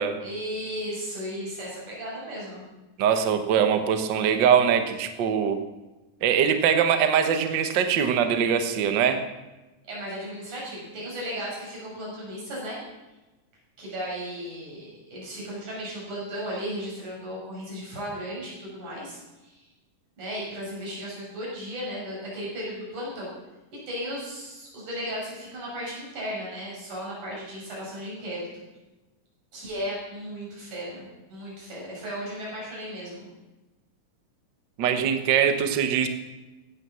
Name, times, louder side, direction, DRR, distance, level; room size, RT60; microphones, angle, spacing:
voice 1, 0.2-2.6 9.8-12.8 13.8-19.7 20.2-23.3 23.7-28.5 29.5-33.3, equal, 60° right, -5 dB, 7.4 m, -35 dB
voice 2, 3.0-5.6 6.2-9.2 34.8-36.1, right 8 dB, 90° right, 8 dB, 1.0 m, -22 dB
16.0 x 9.5 x 7.0 m, 1.1 s
omnidirectional pair, 3.9 m